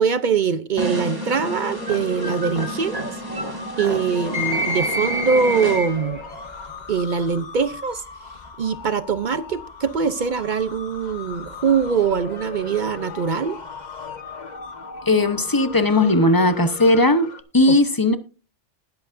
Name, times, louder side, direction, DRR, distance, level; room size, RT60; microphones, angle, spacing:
voice 1, 0.0-3.2 3.8-6.2 6.9-8.0 8.6-13.6 17.7-17.8, right 6 dB, 50° right, 0.6 m, -22 dB
sound 1, 0.8-6.2, equal, 20° right, 1.9 m, -28 dB
sound 2, 0.9-17.4, left 5 dB, 40° left, 1.3 m, -37 dB
voice 2, 15.1-17.3 17.5-18.2, left 2 dB, 20° left, 0.7 m, -17 dB
19.5 x 8.0 x 2.5 m
omnidirectional pair, 1.2 m